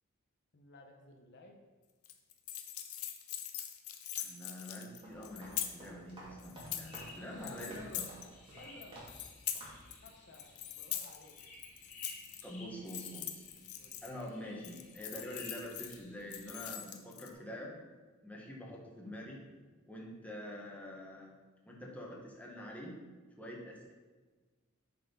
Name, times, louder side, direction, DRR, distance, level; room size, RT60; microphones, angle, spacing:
voice 1, 0.5-1.6 7.1-8.2 8.5-9.0 10.0-11.4 13.8-14.0, left 2 dB, 55° left, 2 dB, 0.8 m, -54 dB
sound 1, 2.0-5.9 6.4-7.1 7.4-8.3 8.6-10.1 10.3-12.4 12.9-14.3 14.6-16.0 16.3-17.3, left 10 dB, 90° left, 0.7 m, -42 dB
voice 2, 4.2-8.0 12.4-13.4 14.0-17.7 18.2-19.4 19.9-21.3 21.7-23.0 23.4-23.9, equal, 5° left, -2 dB, 1.2 m, -46 dB
sound 2, 4.9-9.3 9.5-9.9, right 1 dB, 25° right, 2.2 m, -52 dB
sound 3, 6.8-16.7, left 2 dB, 35° left, 1.8 m, -57 dB
7.6 x 4.4 x 5.3 m, 1.3 s
head